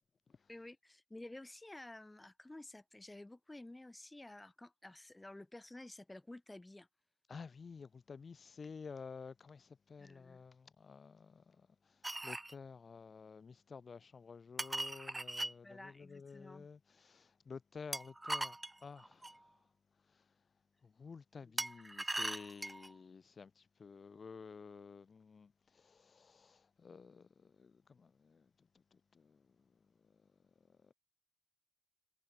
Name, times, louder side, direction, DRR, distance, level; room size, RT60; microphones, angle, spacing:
voice 1, 0.5-6.9 10.0-10.4 15.6-16.7 21.4-21.7, left 2 dB, 15° left, 3.6 m, -52 dB
voice 2, 7.3-11.6 12.2-18.6 18.8-19.3 20.8-28.4 29.1-29.4 30.9-31.0, left 5 dB, 40° left, 1.1 m, -52 dB
sound 1, 12.0-12.5 14.6-15.5 17.9-19.4 21.6-22.9, right 2 dB, 15° right, 0.3 m, -40 dB
cardioid pair, 105°, 0 cm